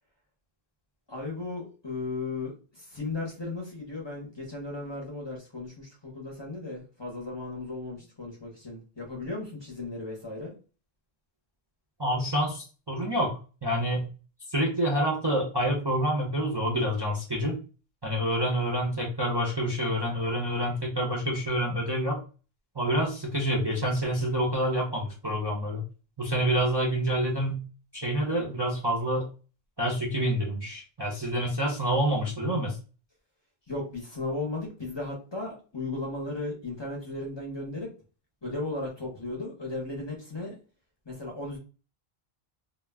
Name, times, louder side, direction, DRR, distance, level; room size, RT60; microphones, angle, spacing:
voice 1, 1.1-10.5 33.7-37.9 38.4-40.5 41.1-41.6, left 2 dB, 30° left, -2 dB, 0.6 m, -36 dB
voice 2, 12.0-14.1 14.5-17.6 18.0-22.2 22.8-25.8 26.2-27.6 27.9-29.3 29.8-32.8, equal, 30° right, -3 dB, 0.5 m, -27 dB
2.3 x 2.0 x 3.3 m, 0.35 s
omnidirectional pair, 1.0 m